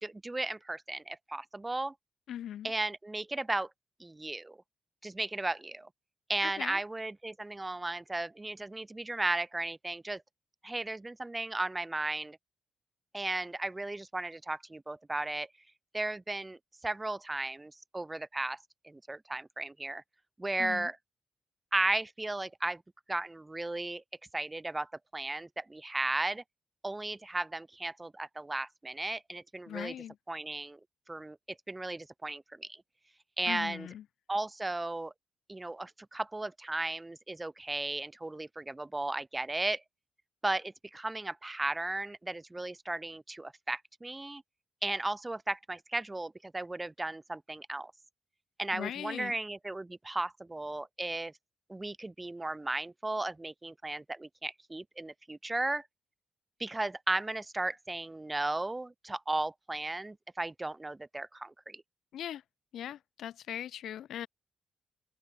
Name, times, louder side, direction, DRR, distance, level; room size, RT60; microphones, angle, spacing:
voice 1, 0.0-1.9 2.6-3.7 4.0-4.6 5.0-5.9 6.3-10.2 10.6-12.4 13.1-15.5 15.9-16.6 16.8-18.6 18.8-20.0 20.4-21.0 21.7-22.8 23.1-24.0 24.3-26.4 26.8-29.9 30.3-30.8 31.1-31.4 31.7-32.8 33.4-33.9 34.3-35.1 35.5-39.8 40.4-44.4 44.8-47.9 48.6-51.3 51.7-55.8 56.6-61.8, right 2 dB, 15° right, 3.7 m, -35 dB
voice 2, 2.3-2.7 6.4-6.8 20.6-20.9 29.7-30.2 33.5-34.0 48.7-49.3 62.1-62.4 62.7-64.3, left 10 dB, 85° left, 3.9 m, -39 dB
open air
wide cardioid pair, 155°, 0 cm